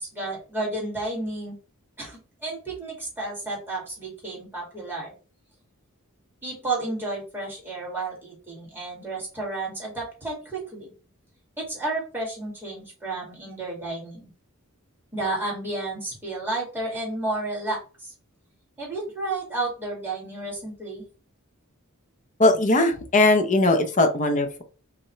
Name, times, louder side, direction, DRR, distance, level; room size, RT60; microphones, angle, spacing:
voice 1, 0.0-1.6 2.0-5.1 6.4-10.9 11.6-14.3 15.1-18.1 18.8-21.0, right 2 dB, 10° right, -4 dB, 2.2 m, -32 dB
voice 2, 22.4-24.6, left 2 dB, 35° left, 7 dB, 0.7 m, -20 dB
5.5 x 2.7 x 3.2 m, 0.36 s
head